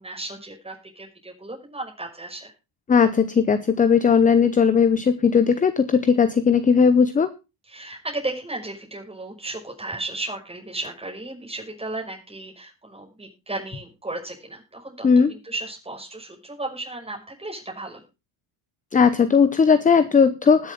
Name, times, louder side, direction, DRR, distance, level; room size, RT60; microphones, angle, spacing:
voice 1, 0.0-2.5 7.6-18.0, right 2 dB, 10° right, 0 dB, 5.9 m, -34 dB
voice 2, 2.9-7.3 15.0-15.3 18.9-20.7, left 6 dB, 15° left, 12 dB, 0.7 m, -17 dB
20.0 x 7.1 x 3.7 m, 0.28 s
cardioid pair, 125°, 48 cm